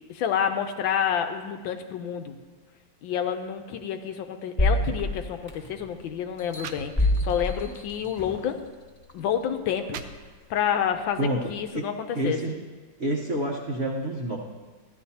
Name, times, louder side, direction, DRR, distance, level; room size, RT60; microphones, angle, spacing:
voice 1, 0.1-2.4 3.0-8.6 9.1-10.0 10.5-12.4, left 8 dB, 75° left, 7 dB, 1.3 m, -29 dB
sound 1, 4.6-5.9 6.4-8.5 9.1-9.2, left 1 dB, 15° left, 1.7 m, -27 dB
sound 2, 5.4-5.5 6.2-6.3 6.5-7.5 8.0-8.2 9.0-9.1 9.6-10.7, right 6 dB, 80° right, 1.4 m, -42 dB
voice 2, 12.1-12.6 13.0-14.4, right 1 dB, 45° right, -3 dB, 0.9 m, -28 dB
14.5 x 10.5 x 2.8 m, 1.3 s
omnidirectional pair, 2.2 m